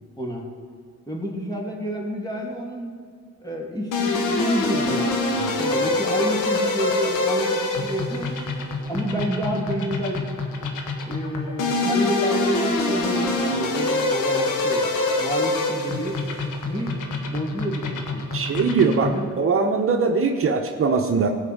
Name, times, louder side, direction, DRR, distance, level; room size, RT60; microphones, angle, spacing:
voice 1, 0.2-0.5 1.1-2.9 3.4-8.4 8.9-10.3 11.0-14.9 15.2-16.2 16.6-17.0 17.3-18.4 19.0-19.3, right 1 dB, 15° left, 0 dB, 2.8 m, -29 dB
sound 1, 3.9-19.3, left 2 dB, 85° left, 1.6 m, -25 dB
voice 2, 18.3-21.3, right 4 dB, 45° right, 3 dB, 1.1 m, -21 dB
15.5 x 5.5 x 8.0 m, 2.1 s
cardioid pair, 90°, 30 cm